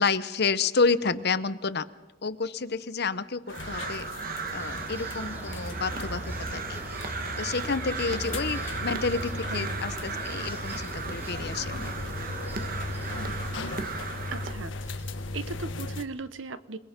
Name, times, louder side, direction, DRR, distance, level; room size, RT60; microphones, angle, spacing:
voice 1, 0.0-1.9 2.2-4.1 4.5-6.2 6.5-6.8 7.4-11.9, left 4 dB, 55° left, 13 dB, 0.9 m, -29 dB
sound 1, 3.5-16.0, left 2 dB, 75° left, 1.5 m, -37 dB
Crow, 3.5-14.5, right 5 dB, 50° right, 1.5 m, -36 dB
sound 2, 4.6-15.7, equal, 10° right, 3.0 m, -42 dB
voice 2, 14.3-15.0 15.3-16.8, right 3 dB, 80° right, 13 dB, 1.1 m, -37 dB
29.0 x 20.0 x 5.3 m, 0.99 s
head